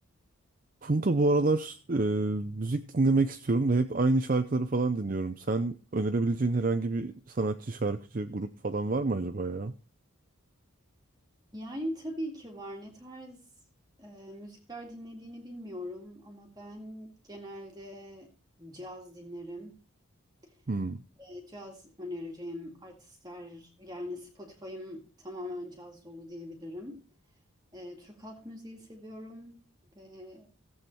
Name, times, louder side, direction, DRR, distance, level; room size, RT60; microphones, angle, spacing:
voice 1, 0.8-9.8 20.7-21.0, right 2 dB, 40° right, 9 dB, 0.5 m, -28 dB
voice 2, 11.5-13.4 14.0-18.3 18.6-19.8 20.4-20.5 21.2-27.0 27.7-29.6 29.9-30.5, equal, 20° right, 1 dB, 2.0 m, -42 dB
15.0 x 8.1 x 4.3 m, 0.36 s
head